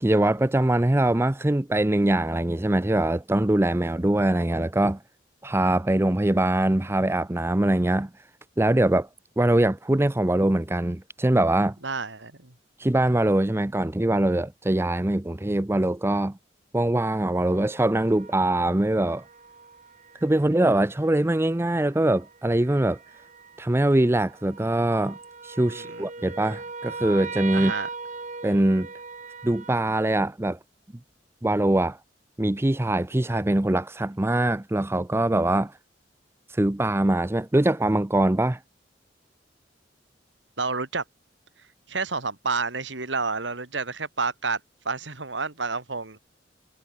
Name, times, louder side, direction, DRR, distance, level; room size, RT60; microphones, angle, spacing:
voice 1, 0.0-5.0 5.4-8.1 8.6-9.1 9.4-11.8 12.8-16.4 16.7-19.2 20.2-23.0 23.6-25.2 25.4-27.7 28.4-28.9 29.4-30.6 31.4-32.0 32.4-35.7 36.6-38.6, right 1 dB, 15° right, 0.6 m, -23 dB
voice 2, 11.8-12.5 25.7-26.0 27.5-27.9 40.6-41.0 41.9-44.6 44.8-46.2, right 4 dB, 85° right, 3.4 m, -29 dB
sound 1, 17.4-29.7, right 4 dB, 45° right, 5.6 m, -40 dB
head